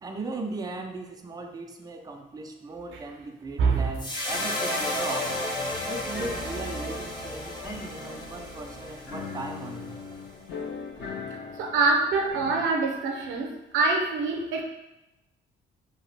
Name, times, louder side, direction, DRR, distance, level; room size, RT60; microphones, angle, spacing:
voice 1, 0.0-5.4 5.8-10.0, right 3 dB, 20° right, 4 dB, 0.4 m, -38 dB
voice 2, 3.6-3.9 11.6-14.6, right 3 dB, 80° right, 1 dB, 0.6 m, -25 dB
sound 1, 3.7-7.5 8.0-8.1 8.9-9.0 9.2-9.9 10.8-10.9 11.3-11.5, left 1 dB, 45° left, 1.1 m, -43 dB
sound 2, 4.0-10.4, left 1 dB, 20° left, 0.7 m, -33 dB
sound 3, 4.3-12.6, left 4 dB, 60° left, 0.7 m, -41 dB
2.8 x 2.2 x 3.2 m, 0.97 s
cardioid pair, 90°, 20 cm